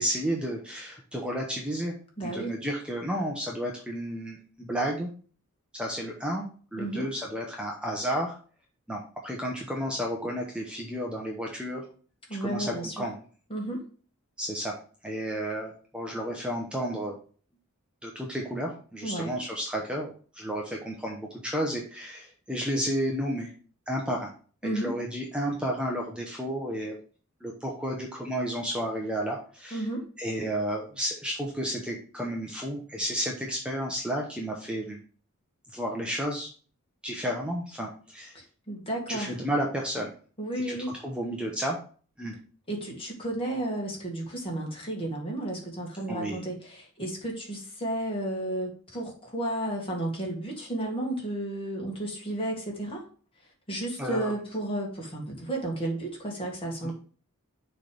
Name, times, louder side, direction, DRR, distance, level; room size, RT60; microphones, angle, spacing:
voice 1, 0.0-1.9 2.2-5.1 5.7-6.5 6.7-8.3 8.9-11.8 12.4-13.2 14.4-14.7 15.0-17.2 18.0-23.5 23.9-24.3 24.6-27.0 27.4-29.9 30.2-35.0 35.7-36.5 37.0-38.3 39.1-40.1 40.6-40.8 41.0-41.8 42.2-42.3 46.1-46.4 54.0-54.3 56.8-56.9, equal, 5° right, -1 dB, 0.8 m, -32 dB
voice 2, 2.2-2.5 6.8-7.1 12.3-13.1 13.5-13.8 19.0-19.4 24.6-24.9 29.7-30.1 38.3-39.3 40.4-40.9 42.7-53.0 53.7-56.9, right 1 dB, 25° left, -1 dB, 2.0 m, -32 dB
6.5 x 3.3 x 5.2 m, 0.41 s
head